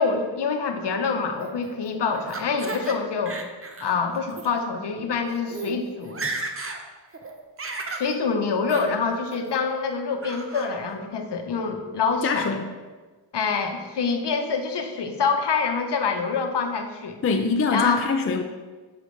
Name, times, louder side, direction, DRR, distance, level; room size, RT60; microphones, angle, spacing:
voice 1, 0.0-3.4 3.8-6.2 7.9-12.5 13.3-17.2 17.7-18.0, left 5 dB, 55° left, 4 dB, 1.0 m, -26 dB
Laughter, 1.4-3.0 3.3-3.9 4.3-4.5 5.1-5.2 5.5-5.7 6.0-6.8 7.1-8.1 8.7-8.9 9.3-9.8 10.2-10.7, right 3 dB, 25° right, 0.7 m, -34 dB
voice 2, 12.2-12.7 17.2-18.4, left 4 dB, 30° left, 5 dB, 0.4 m, -24 dB
8.3 x 5.0 x 3.2 m, 1.3 s
cardioid pair, 90°, 49 cm